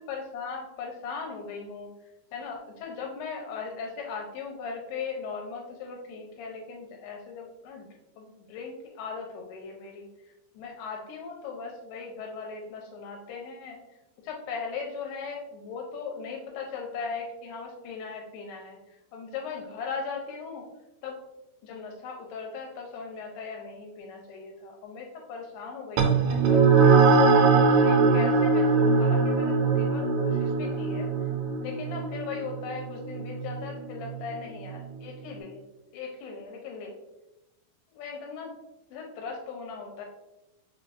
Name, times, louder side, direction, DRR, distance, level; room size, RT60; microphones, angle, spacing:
voice 1, 0.0-1.9 2.3-7.9 8.2-10.1 10.6-13.8 14.2-18.8 19.1-20.6 21.0-21.2 21.6-26.9 27.3-31.1 31.6-35.6 35.9-37.0 37.9-38.5 38.9-40.1, left 5 dB, 85° left, 0 dB, 2.6 m, -38 dB
sound 1, 26.0-34.8, right 4 dB, 90° right, 2.7 m, -22 dB
6.0 x 3.2 x 2.5 m, 0.97 s
omnidirectional pair, 4.7 m